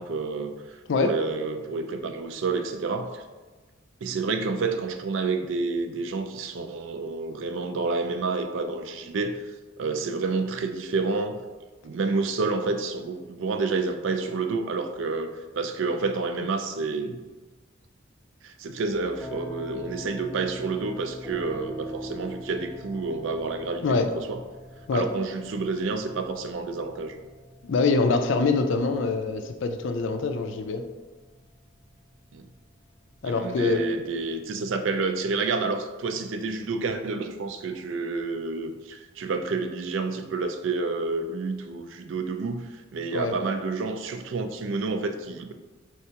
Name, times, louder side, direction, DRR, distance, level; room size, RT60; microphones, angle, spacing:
voice 1, 0.0-3.2 4.0-11.4 11.8-15.3 15.5-17.2 18.4-24.4 24.9-27.2 32.3-32.5 33.2-45.5, right 3 dB, 70° right, 7 dB, 0.4 m, -29 dB
sound 1, 18.9-35.3, equal, ahead, 0.7 m, -44 dB
voice 2, 27.6-30.8 33.2-33.9 43.1-43.3, left 3 dB, 65° left, 6 dB, 0.4 m, -24 dB
4.6 x 3.2 x 2.8 m, 1.2 s
head